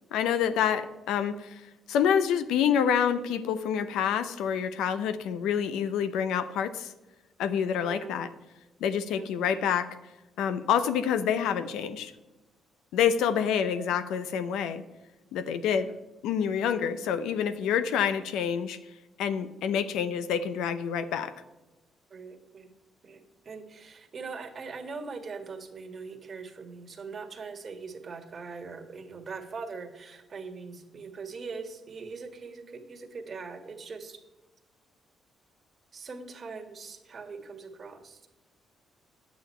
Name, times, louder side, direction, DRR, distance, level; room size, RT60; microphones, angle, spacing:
voice 1, 0.1-1.6 1.9-6.9 7.4-8.3 8.8-9.9 10.4-12.1 12.9-14.8 15.3-15.9 16.2-18.8 19.2-21.3, left 8 dB, 90° left, 12 dB, 0.6 m, -27 dB
voice 2, 7.8-8.1 9.1-9.3 22.1-22.7 23.0-34.2 35.9-38.3, right 4 dB, 45° right, 6 dB, 1.6 m, -41 dB
9.3 x 8.5 x 4.4 m, 1.1 s
cardioid pair, 90°, 0 cm